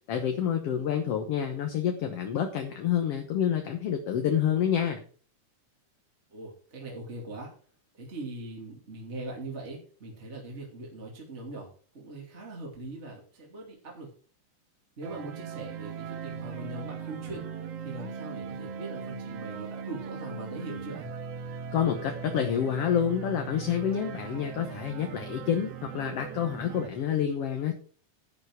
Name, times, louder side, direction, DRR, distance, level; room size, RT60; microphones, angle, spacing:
voice 1, 0.1-5.0 21.7-27.7, left 9 dB, 60° left, 4 dB, 2.0 m, -28 dB
voice 2, 6.3-7.5 7.9-11.7 11.9-14.1 15.0-21.1, right 2 dB, 25° right, -2 dB, 2.6 m, -41 dB
sound 1, 15.0-26.9, right 6 dB, 65° right, 1.9 m, -39 dB
11.0 x 7.6 x 4.7 m, 0.42 s
omnidirectional pair, 3.3 m